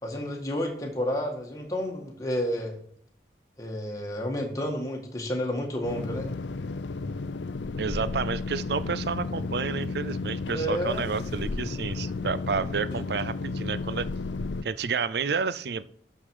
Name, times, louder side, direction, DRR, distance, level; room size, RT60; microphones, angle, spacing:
voice 1, 0.0-2.7 3.6-6.3 10.5-11.1 12.9-13.0, equal, 20° left, 0 dB, 1.8 m, -30 dB
sound 1, 5.8-14.6, left 3 dB, 80° left, 0.5 m, -33 dB
voice 2, 7.8-14.1 14.6-16.0, right 5 dB, 65° right, 16 dB, 0.5 m, -30 dB
11.5 x 5.8 x 4.8 m, 0.64 s
head